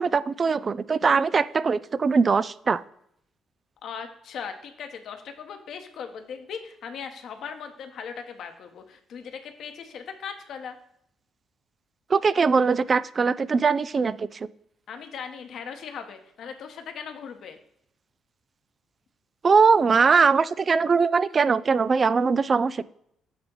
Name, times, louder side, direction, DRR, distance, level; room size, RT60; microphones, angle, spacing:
voice 1, 0.0-2.8 12.1-14.4 19.4-22.8, right 5 dB, 45° right, 17 dB, 0.4 m, -21 dB
voice 2, 3.8-10.8 14.9-17.6, left 6 dB, 65° left, 6 dB, 1.1 m, -38 dB
8.6 x 3.4 x 5.4 m, 0.73 s
hypercardioid pair, 50°, 0 cm